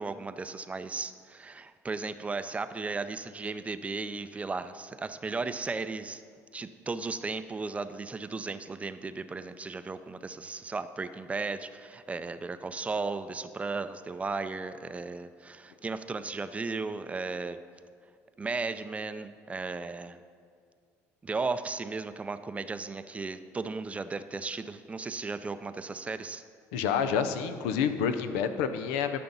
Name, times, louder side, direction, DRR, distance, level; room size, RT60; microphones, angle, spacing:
voice 1, 0.0-6.2 6.5-17.6 18.4-20.2 21.2-26.4, right 4 dB, 20° right, 11 dB, 0.4 m, -35 dB
voice 2, 26.7-29.2, left 7 dB, 90° left, 10 dB, 0.5 m, -28 dB
12.5 x 5.7 x 4.0 m, 2.2 s
supercardioid pair, 90°, 6 cm